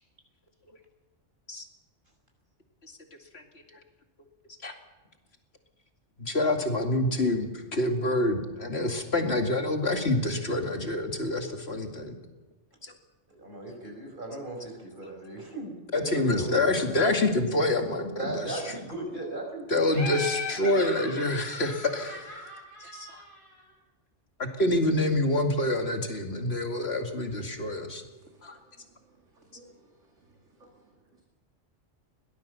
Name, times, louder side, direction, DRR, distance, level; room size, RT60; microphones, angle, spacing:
voice 1, 6.2-12.2 12.8-12.9 15.9-18.6 19.7-22.3 22.8-23.2 24.4-28.0 28.4-28.6, left 1 dB, 55° left, 4 dB, 2.7 m, -27 dB
voice 2, 13.3-17.1 18.2-19.9, right 2 dB, 40° right, 1 dB, 5.7 m, -38 dB
Laughter, 19.9-23.6, left 3 dB, 85° left, 5.5 m, -37 dB
voice 3, 27.7-28.4 28.8-28.9 29.3-29.8 30.6-30.8, right 1 dB, 70° right, 1 dB, 2.6 m, -57 dB
22.0 x 18.0 x 7.0 m, 1.2 s
omnidirectional pair, 1.3 m